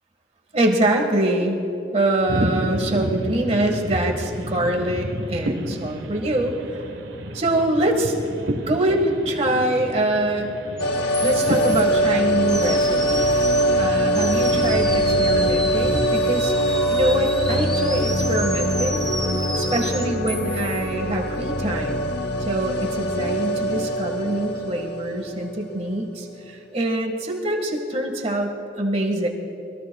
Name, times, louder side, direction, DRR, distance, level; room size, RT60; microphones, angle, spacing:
voice 1, 0.5-1.6 1.9-6.8 7.3-8.1 8.7-10.5 11.2-16.5 16.9-19.0 19.6-22.0 22.5-29.3, right 1 dB, 35° right, 2 dB, 1.7 m, -24 dB
sound 1, 2.3-16.2, right 1 dB, 85° right, 1.3 m, -31 dB
sound 2, 10.8-25.7 25.9-26.0, equal, 70° left, 1.1 m, -23 dB
sound 3, 10.8-10.9 11.1-11.8 12.5-13.8 14.1-20.8, equal, 5° left, 1.3 m, -32 dB
27.0 x 21.5 x 2.3 m, 2.7 s
head